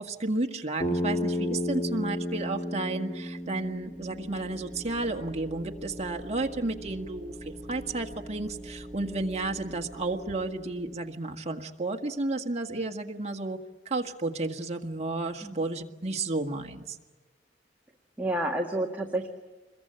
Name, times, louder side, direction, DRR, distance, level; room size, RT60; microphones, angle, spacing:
voice 1, 0.0-13.6 13.9-17.0, right 2 dB, 35° right, 3 dB, 1.8 m, -32 dB
Bass guitar, 0.8-5.1, left 1 dB, 35° left, 4.3 m, -32 dB
sound 1, 3.4-11.1, equal, 10° left, 5.9 m, -44 dB
voice 2, 15.4-15.8 18.2-19.3, right 1 dB, 10° right, 0 dB, 1.8 m, -31 dB
27.0 x 22.0 x 9.0 m, 1.3 s
head